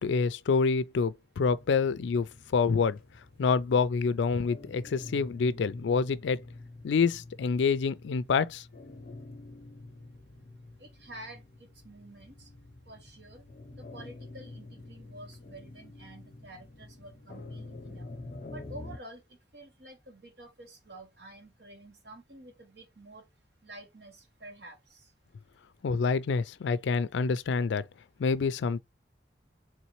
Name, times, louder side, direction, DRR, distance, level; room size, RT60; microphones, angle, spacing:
voice 1, 0.0-3.0 3.4-6.4 6.8-8.6 25.8-27.8 28.2-28.8, left 5 dB, 80° left, 0.4 m, -27 dB
sound 1, 1.5-19.0, left 2 dB, 50° left, 0.7 m, -47 dB
voice 2, 10.8-12.5 12.9-13.4 13.8-18.0 18.5-19.2 19.5-23.3 23.6-25.0, right 1 dB, 65° right, 1.4 m, -49 dB
4.1 x 3.2 x 3.1 m
head